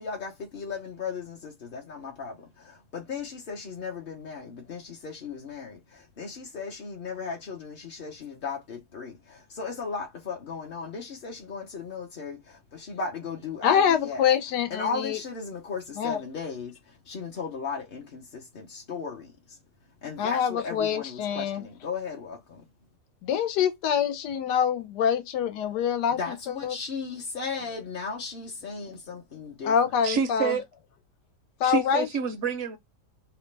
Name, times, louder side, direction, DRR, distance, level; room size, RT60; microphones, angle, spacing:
voice 1, 0.0-14.2 14.7-19.6 20.0-22.6 26.2-29.8, left 5 dB, 50° left, 0.7 m, -36 dB
voice 2, 13.6-15.2 16.0-16.2 20.2-21.6 23.2-26.2 26.5-26.8 29.6-30.6 31.6-32.1, left 8 dB, 85° left, 1.2 m, -25 dB
voice 3, 30.0-30.6 31.6-32.8, right 6 dB, 65° right, 0.7 m, -27 dB
2.9 x 2.1 x 3.1 m
omnidirectional pair, 1.7 m